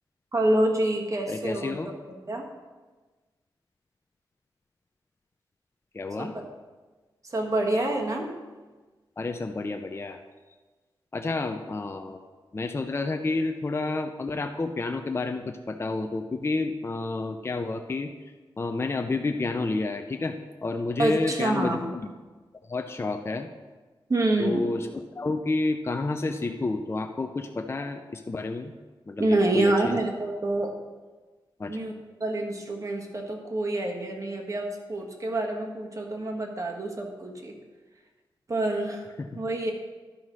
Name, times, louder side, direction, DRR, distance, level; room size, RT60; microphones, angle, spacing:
voice 1, 0.3-1.7 2.1-2.4 6.2-6.4 7.3-8.3 21.0-21.8 24.1-24.7 29.2-30.7 31.7-31.9 32.2-37.5 38.5-39.1 39.3-39.7, right 1 dB, 40° right, 1 dB, 1.5 m, -27 dB
voice 2, 1.3-1.9 5.9-6.3 9.2-10.2 11.1-12.2 12.5-18.1 18.6-20.4 20.6-22.1 22.7-23.5 24.4-28.7 29.1-30.0 31.6-31.8 39.2-39.3, left 3 dB, 30° left, 5 dB, 0.6 m, -30 dB
11.5 x 5.3 x 6.2 m, 1.3 s
wide cardioid pair, 85°, 9 cm